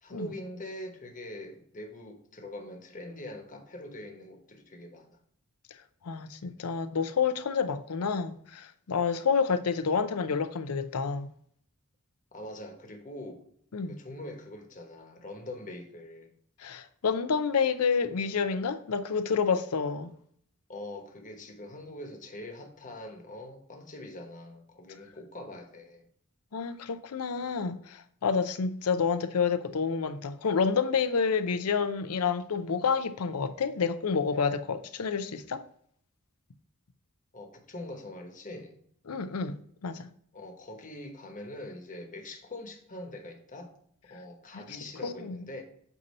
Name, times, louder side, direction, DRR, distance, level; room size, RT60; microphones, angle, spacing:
voice 1, 0.0-5.2 12.3-13.4 13.9-16.3 20.7-26.1 37.3-38.8 40.3-43.7 44.1-45.6, left 1 dB, 35° left, 1.1 m, -43 dB
voice 2, 6.0-11.3 13.7-14.0 16.6-20.1 26.5-35.6 39.1-40.1 44.5-44.6 45.0-45.4, left 5 dB, 85° left, 0.6 m, -29 dB
8.3 x 2.8 x 5.3 m
head